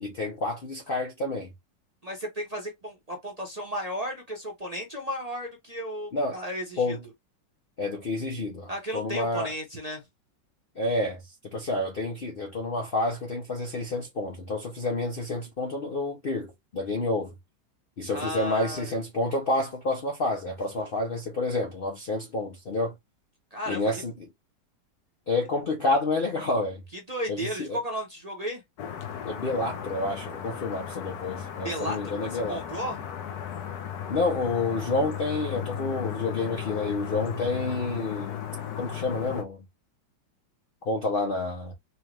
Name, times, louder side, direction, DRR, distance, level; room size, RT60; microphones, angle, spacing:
voice 1, 0.0-1.5 6.1-6.4 6.8-7.0 7.8-9.5 10.8-11.2 11.5-17.3 18.0-22.9 23.7-24.1 25.3-26.8 27.3-27.8 29.3-32.6 34.1-38.4 38.7-39.6 40.8-41.7, left 2 dB, 85° left, 0.4 m, -29 dB
voice 2, 2.0-7.0 8.7-10.0 18.1-19.0 23.5-24.0 26.9-28.6 31.6-33.0, equal, 35° right, 0.7 m, -34 dB
sound 1, 28.8-39.4, left 9 dB, 65° left, 1.2 m, -35 dB
4.5 x 2.3 x 3.2 m
omnidirectional pair, 2.0 m